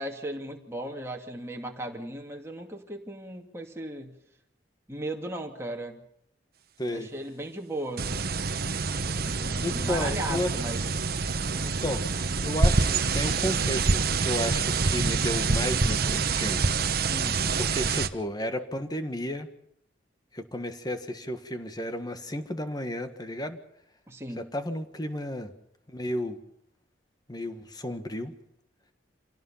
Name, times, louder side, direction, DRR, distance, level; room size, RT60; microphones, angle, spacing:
voice 1, 0.0-4.2 4.9-6.0 6.9-8.1 9.2-10.9 17.1-17.5 24.1-24.5, right 1 dB, 15° right, 1 dB, 2.6 m, -36 dB
sound 1, 8.0-18.1, right 4 dB, 55° right, 1.1 m, -26 dB
voice 2, 9.6-10.5 11.6-12.1 12.4-16.6 17.6-19.5 20.3-23.6 24.4-25.5 25.9-26.4 27.3-28.3, left 1 dB, 20° left, 8 dB, 1.7 m, -33 dB
26.5 x 17.5 x 5.8 m, 0.74 s
head